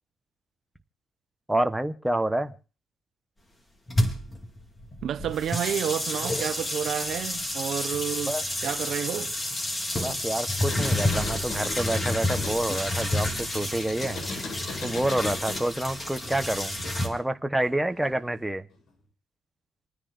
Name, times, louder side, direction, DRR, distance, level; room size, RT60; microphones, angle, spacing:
voice 1, 1.5-2.5 8.3-8.4 10.0-14.2 14.8-16.8 17.0-18.6, right 1 dB, 5° right, 1.1 m, -28 dB
sound 1, 3.9-17.1, left 1 dB, 25° left, 4.0 m, -30 dB
voice 2, 5.0-8.4 8.6-9.3, right 9 dB, 70° right, 1.0 m, -30 dB
sound 2, 10.6-17.3 17.6-18.5, left 3 dB, 75° left, 7.4 m, -38 dB
28.5 x 9.9 x 2.6 m
cardioid pair, 90°, 0 cm